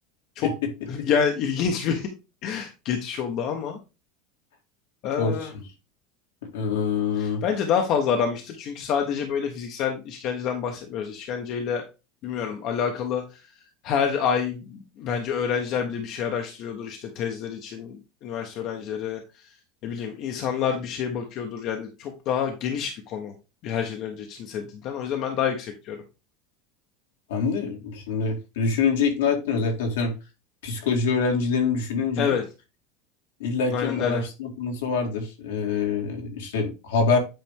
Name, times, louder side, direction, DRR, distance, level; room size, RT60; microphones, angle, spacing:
voice 1, 0.9-2.1 2.4-3.8 5.0-5.5 7.2-11.8 12.2-13.2 13.8-19.2 19.8-23.3 23.6-26.0 32.2-32.4 33.7-34.2, left 7 dB, 55° left, 3 dB, 1.4 m, -27 dB
voice 2, 6.5-7.4 27.3-30.1 30.6-32.3 33.4-37.2, left 5 dB, 80° left, 2 dB, 2.2 m, -25 dB
9.0 x 4.2 x 3.7 m, 0.29 s
hypercardioid pair, 85°, 0 cm